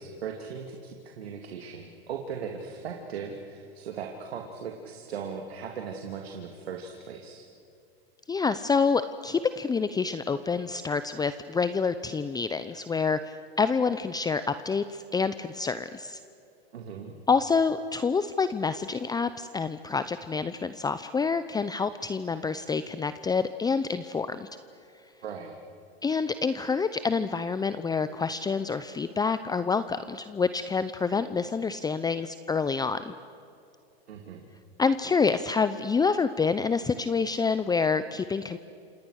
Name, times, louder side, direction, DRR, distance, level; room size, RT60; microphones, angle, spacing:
voice 1, 0.0-7.5 16.7-17.2 25.2-25.5 34.1-34.4, right 6 dB, 80° right, 2 dB, 2.6 m, -38 dB
voice 2, 8.3-16.2 17.3-24.5 26.0-33.1 34.8-38.6, left 5 dB, 15° left, 12 dB, 0.7 m, -27 dB
29.5 x 27.5 x 6.5 m, 2.6 s
hypercardioid pair, 110°, 31 cm